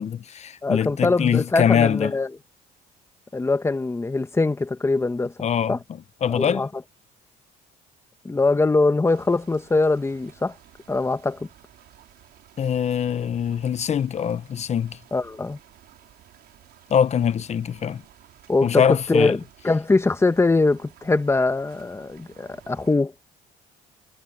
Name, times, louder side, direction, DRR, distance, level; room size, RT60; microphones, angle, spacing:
voice 1, 0.0-2.1 5.4-6.7 12.6-15.0 16.9-18.0 18.6-19.4, left 8 dB, 40° left, 1.1 m, -23 dB
voice 2, 0.6-2.3 3.3-5.3 5.7-5.8 6.3-6.7 8.2-10.5 10.9-11.5 15.1-15.6 18.5-19.4 19.6-23.1, left 3 dB, 15° left, 1.5 m, -22 dB
sound 1, 9.0-22.9, right 13 dB, 70° right, 5.5 m, -53 dB
cardioid pair, 110°, 17 cm